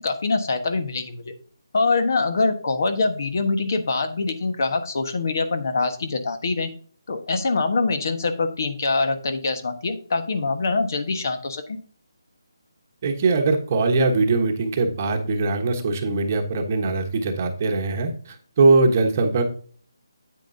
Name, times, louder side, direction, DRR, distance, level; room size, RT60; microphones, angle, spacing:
voice 1, 0.0-1.3 1.7-6.7 7.1-11.8, left 3 dB, 45° left, 8 dB, 1.3 m, -24 dB
voice 2, 13.0-19.4, right 3 dB, 30° right, 4 dB, 1.2 m, -21 dB
8.9 x 8.8 x 2.7 m, 0.43 s
hypercardioid pair, 170°, 2 cm